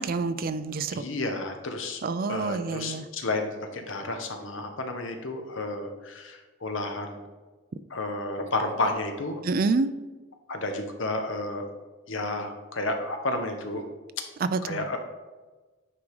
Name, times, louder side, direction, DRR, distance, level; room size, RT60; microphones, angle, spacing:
voice 1, 0.0-1.1 2.0-3.0 9.4-10.0 14.4-14.8, right 4 dB, 45° right, 12 dB, 0.4 m, -27 dB
voice 2, 0.9-2.0 2.3-7.3 7.9-9.4 10.5-11.7 12.1-13.8 14.6-15.0, left 2 dB, 70° left, 5 dB, 1.1 m, -31 dB
9.9 x 3.7 x 4.8 m, 1.3 s
head